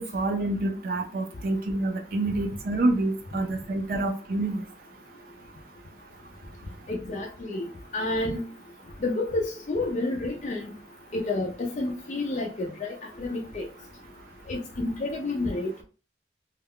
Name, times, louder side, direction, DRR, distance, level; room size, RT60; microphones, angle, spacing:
voice 1, 0.0-4.6, right 2 dB, 55° right, 4 dB, 0.4 m, -27 dB
voice 2, 6.9-7.6 7.9-8.4 9.0-10.6 11.1-13.7 14.5-15.8, left 2 dB, 40° left, -1 dB, 0.4 m, -30 dB
2.3 x 2.2 x 3.4 m, 0.36 s
head